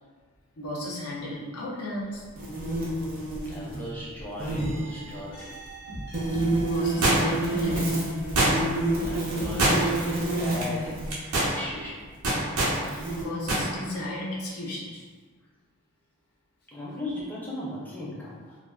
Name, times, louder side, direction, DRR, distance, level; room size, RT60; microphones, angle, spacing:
voice 1, 0.6-2.5 6.3-8.0 12.8-15.1, left 1 dB, 90° left, -5 dB, 0.6 m, -35 dB
sound 1, 2.4-3.9 4.2-4.7 6.1-11.1 12.0-12.1 12.6-13.2, right 2 dB, 45° right, 0.5 m, -29 dB
voice 2, 3.2-5.5 9.0-11.0 11.3-12.1 16.7-18.6, left 1 dB, 10° left, -7 dB, 0.5 m, -37 dB
sound 2, 4.6-8.6 9.0-10.0, equal, 60° left, 0.8 m, -40 dB
sound 3, 7.0-7.5 8.4-8.9 9.6-10.1 10.4-10.6 11.1-11.5 12.2-12.8 13.5-13.7 14.0-14.1, right 1 dB, 85° right, 0.6 m, -23 dB
2.4 x 2.3 x 2.3 m, 1.5 s
head